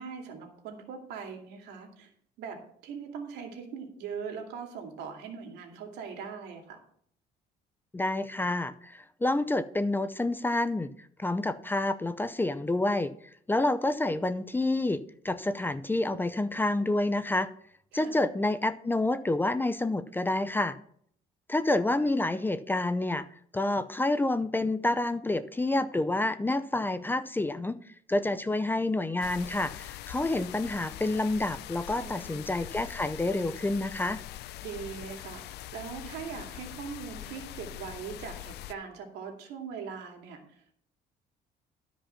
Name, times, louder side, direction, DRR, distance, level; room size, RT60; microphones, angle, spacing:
voice 1, 0.0-2.1 2.4-6.8 17.9-18.2 32.0-32.5 34.6-40.6, right 6 dB, 85° right, 3 dB, 2.5 m, -41 dB
voice 2, 7.9-10.9 11.2-13.1 13.5-17.5 17.9-20.8 21.5-23.3 23.5-27.8 28.1-34.2, left 2 dB, 10° left, 13 dB, 0.6 m, -28 dB
sound 1, 29.2-38.7, left 14 dB, 80° left, 0.6 m, -43 dB
12.5 x 5.2 x 5.7 m, 0.62 s
cardioid pair, 110°, 17 cm